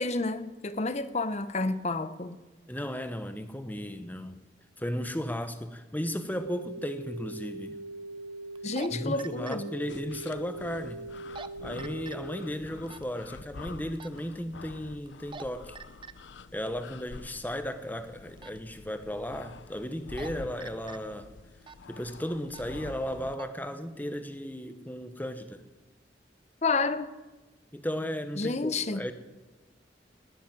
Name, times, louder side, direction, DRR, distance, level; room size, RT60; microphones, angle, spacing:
voice 1, 0.0-2.4 8.6-9.7 26.6-27.1 28.4-29.0, left 3 dB, 40° left, 0.8 m, -30 dB
voice 2, 2.7-4.4 4.8-7.8 8.9-11.0 11.6-15.8 16.5-21.3 21.9-25.6 27.7-29.1, equal, 10° left, 1.0 m, -35 dB
sound 1, 6.3-12.4, right 2 dB, 70° right, 2.1 m, -41 dB
sound 2, 6.5-6.6 8.6-8.9 9.2-9.6 11.2-11.5 11.8-12.2 12.9-13.0 14.0-14.2 15.1-15.4 15.8-16.1 18.4-18.6 19.9-20.3 20.6-21.0 21.6-21.8 22.5-22.7 23.1-23.5, right 5 dB, 30° right, 0.6 m, -43 dB
sound 3, 9.9-23.4, left 4 dB, 90° left, 0.6 m, -48 dB
18.0 x 7.2 x 9.5 m
head